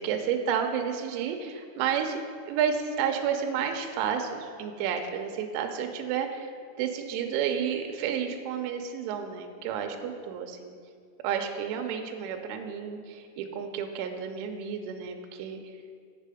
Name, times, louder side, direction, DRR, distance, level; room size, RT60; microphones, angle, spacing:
voice 1, 0.0-2.2 2.5-6.5 6.8-10.7 11.2-15.6, right 7 dB, 80° right, 4 dB, 2.9 m, -31 dB
7.5 x 6.8 x 4.9 m, 2.2 s
omnidirectional pair, 5.8 m